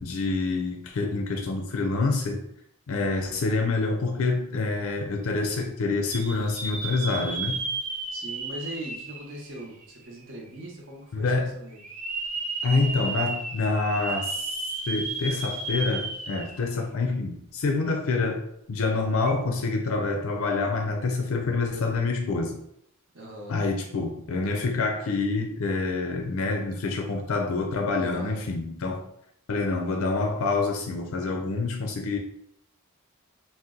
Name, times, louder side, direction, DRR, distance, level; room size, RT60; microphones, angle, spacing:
voice 1, 0.0-2.5 2.9-7.6 11.1-11.5 12.6-14.5 14.9-22.6 23.5-29.0 29.5-32.2, left 3 dB, 75° left, 3 dB, 0.4 m, -27 dB
sound 1, 6.1-10.1 10.6-10.7 11.8-16.7 17.1-17.2 19.1-19.3, right 3 dB, 35° right, 0.4 m, -33 dB
voice 2, 8.1-11.8 23.1-23.6 28.0-28.4, equal, 55° right, -1 dB, 0.7 m, -40 dB
2.7 x 2.1 x 3.6 m, 0.72 s
head